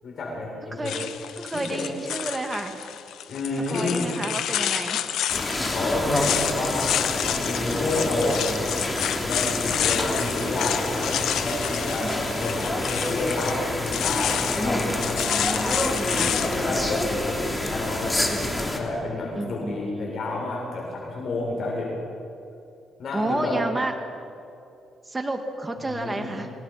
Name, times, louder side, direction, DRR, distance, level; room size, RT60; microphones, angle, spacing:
voice 1, 0.0-0.9 1.5-1.9 3.3-4.1 5.7-8.4 9.2-15.7 16.1-18.2 18.7-21.9 23.0-23.6 25.9-26.3, left 2 dB, 60° left, -3 dB, 7.7 m, -30 dB
voice 2, 0.6-1.1 1.4-2.8 3.7-5.0 12.0-12.5 15.3-16.3 19.3-20.2 23.1-23.9 25.0-26.5, right 2 dB, 20° right, 4 dB, 2.2 m, -31 dB
sound 1, 0.8-17.0, left 10 dB, 80° left, 1.2 m, -29 dB
sound 2, 5.3-18.8, left 1 dB, 15° left, 3.1 m, -28 dB
28.5 x 19.5 x 6.1 m, 2.6 s
cardioid pair, 90°, 0 cm